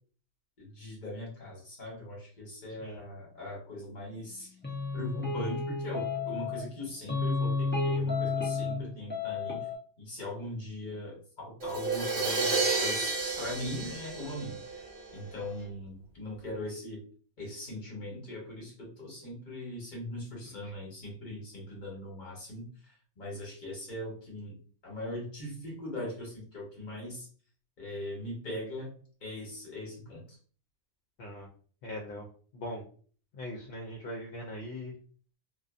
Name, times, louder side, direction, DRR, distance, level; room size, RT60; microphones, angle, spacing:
voice 1, 0.6-4.5 4.9-9.6 10.0-14.6 15.1-17.0 17.4-22.7 23.2-24.6 24.8-27.3 27.8-28.9 29.2-30.2, left 1 dB, 45° left, -1 dB, 1.1 m, -40 dB
sound 1, 4.6-6.7 7.1-8.8 9.1-9.8, left 4 dB, 15° left, 0.3 m, -31 dB
Crash cymbal, 11.6-15.4, right 3 dB, 45° right, 1.0 m, -31 dB
voice 2, 31.8-32.3 32.5-32.8 33.3-34.9, left 1 dB, 70° left, -1 dB, 0.8 m, -40 dB
2.5 x 2.3 x 2.4 m, 0.44 s
omnidirectional pair, 1.2 m